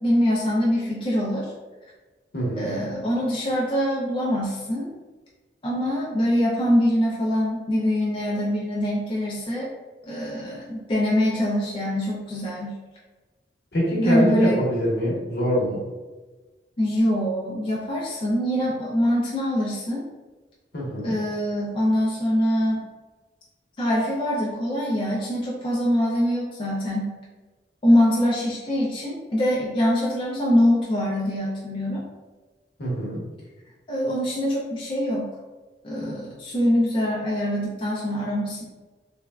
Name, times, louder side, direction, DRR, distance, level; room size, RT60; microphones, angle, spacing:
voice 1, 0.0-1.5 2.6-4.9 5.6-9.7 10.1-12.8 14.0-14.6 16.8-20.1 21.0-22.8 23.8-27.1 27.8-32.0 33.9-35.4 35.8-38.6, equal, 30° left, -6 dB, 0.4 m, -24 dB
voice 2, 2.3-2.7 13.7-15.8 20.7-21.2 32.8-33.2, equal, 70° left, -4 dB, 0.9 m, -24 dB
3.3 x 2.1 x 2.2 m, 1.2 s
head